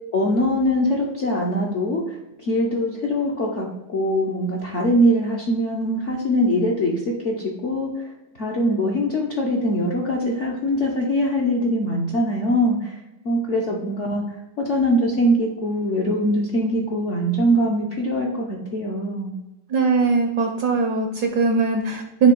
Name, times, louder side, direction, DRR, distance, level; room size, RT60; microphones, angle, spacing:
voice 1, 0.1-8.1 8.4-13.0 13.2-14.2 14.6-19.3, equal, 55° left, -2 dB, 0.8 m, -22 dB
voice 2, 19.7-22.3, right 4 dB, 65° right, 4 dB, 1.0 m, -20 dB
6.7 x 3.0 x 5.3 m, 0.95 s
omnidirectional pair, 2.2 m